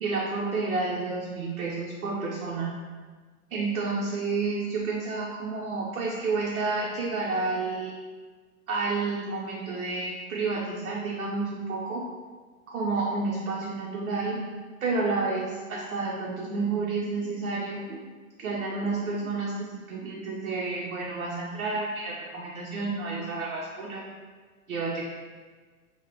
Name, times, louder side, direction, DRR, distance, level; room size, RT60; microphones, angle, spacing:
voice 1, 0.0-2.7 3.5-7.9 8.7-12.0 12.7-14.4 14.8-18.0 18.4-24.1 24.7-25.0, right 3 dB, 70° right, -5 dB, 0.5 m, -30 dB
2.1 x 2.0 x 3.2 m, 1.4 s
figure-of-eight pair, 105°, 42 cm